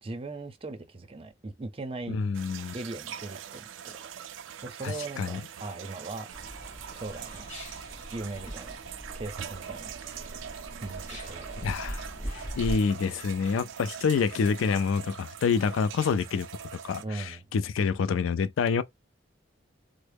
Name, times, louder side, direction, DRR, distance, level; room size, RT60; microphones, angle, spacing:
voice 1, 0.0-2.2 2.7-4.0 4.6-6.3 6.9-7.5 8.1-8.8 9.1-10.3 10.8-12.2 17.0-17.5, right 2 dB, 30° right, 0.6 m, -39 dB
voice 2, 2.1-2.7 4.8-5.4 11.6-16.5 16.8-18.8, left 5 dB, 90° left, 0.3 m, -27 dB
sound 1, 2.3-17.0, right 8 dB, 75° right, 0.3 m, -43 dB
sound 2, 6.3-12.8, equal, 40° left, 1.4 m, -40 dB
3.6 x 2.0 x 3.4 m
head